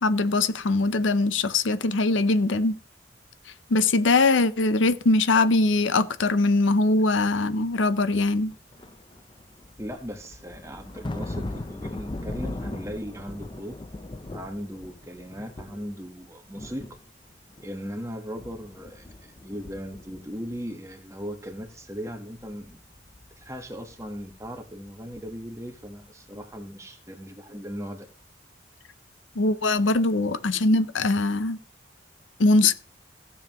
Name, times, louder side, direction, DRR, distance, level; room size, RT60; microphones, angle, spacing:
voice 1, 0.0-2.8 3.7-8.5 29.4-31.6 32.4-32.7, left 2 dB, 80° left, 0.7 m, -22 dB
sound 1, 8.5-16.2 16.5-18.0 18.3-20.9 21.2-26.0 26.3-26.5, left 1 dB, 25° left, 0.5 m, -39 dB
voice 2, 9.8-13.8 14.3-16.9 17.6-19.1 19.4-22.8 23.4-28.1, equal, 15° right, 1.2 m, -38 dB
16.0 x 7.2 x 3.0 m
head